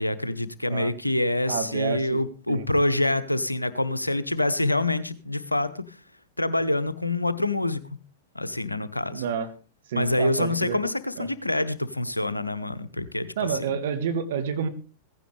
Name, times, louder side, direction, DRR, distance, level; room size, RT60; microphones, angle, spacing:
voice 1, 0.0-6.0 6.4-7.8 8.3-9.3 9.9-13.8, left 2 dB, 85° left, 1.0 m, -26 dB
voice 2, 1.5-2.2 2.5-2.7 9.1-9.5 9.9-10.8 11.2-11.3 13.4-14.7, right 7 dB, 60° right, 1.7 m, -29 dB
16.0 x 15.5 x 3.3 m
figure-of-eight pair, 90°, 0 cm